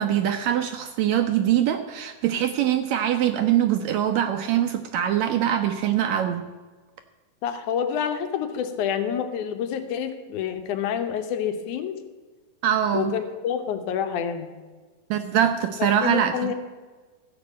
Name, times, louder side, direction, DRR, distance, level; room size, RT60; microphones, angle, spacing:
voice 1, 0.0-6.5 12.6-13.1 15.1-16.5, right 10 dB, 80° right, 7 dB, 1.7 m, -23 dB
voice 2, 7.4-11.9 12.9-14.5 16.0-16.5, left 8 dB, 75° left, 7 dB, 2.3 m, -28 dB
14.0 x 5.3 x 8.2 m, 1.4 s
omnidirectional pair, 3.6 m